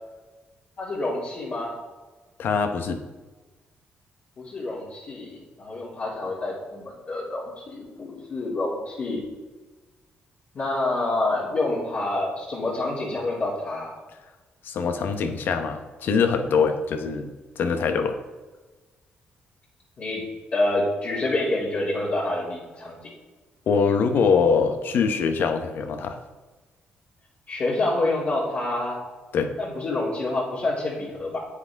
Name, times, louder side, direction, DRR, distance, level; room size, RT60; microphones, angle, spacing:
voice 1, 0.8-1.7 4.4-9.2 10.5-13.9 20.0-20.2 20.5-23.0 27.5-29.0 29.6-31.4, left 2 dB, 50° left, -7 dB, 2.7 m, -27 dB
voice 2, 2.4-3.0 14.6-17.3 17.6-18.2 23.7-26.2 29.3-29.5, left 5 dB, 70° left, 7 dB, 1.0 m, -23 dB
9.8 x 8.4 x 3.6 m, 1.2 s
cardioid pair, 100°, 4 cm